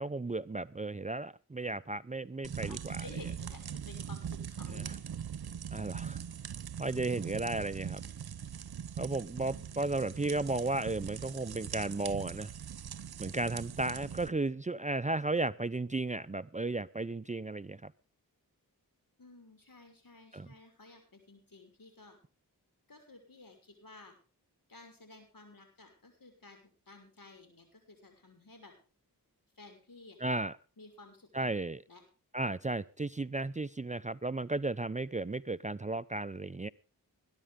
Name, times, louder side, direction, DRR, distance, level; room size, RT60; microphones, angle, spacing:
voice 1, 0.0-3.0 4.7-4.8 5.7-6.2 6.8-8.0 9.0-12.5 13.2-17.9 20.3-20.5 30.2-30.5 31.3-31.8 32.3-36.7, right 2 dB, 20° right, 15 dB, 0.6 m, -34 dB
sound 1, 2.4-14.3, right 8 dB, 75° right, 0.9 m, -41 dB
voice 2, 2.5-5.0 9.4-9.9 19.2-22.2 22.9-24.1 24.7-28.7 29.6-30.2 30.8-31.5 31.9-32.0, left 3 dB, 60° left, 5 dB, 6.4 m, -54 dB
21.0 x 11.5 x 3.7 m, 0.35 s
cardioid pair, 40°, 38 cm